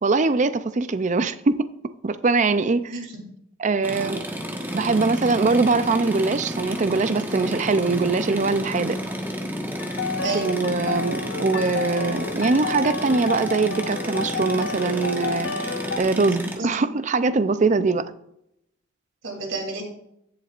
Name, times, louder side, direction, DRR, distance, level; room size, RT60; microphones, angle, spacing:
voice 1, 0.0-3.0 3.6-4.3 4.7-9.0 10.3-18.1, right 3 dB, 40° right, 0.5 m, -22 dB
voice 2, 2.8-3.2 10.2-10.6 16.6-16.8 19.2-19.8, right 3 dB, 85° right, 3.1 m, -30 dB
sound 1, 3.8-16.6, equal, 10° right, 1.3 m, -31 dB
sound 2, 9.8-16.0, left 4 dB, 70° left, 0.6 m, -31 dB
15.0 x 8.0 x 2.5 m
head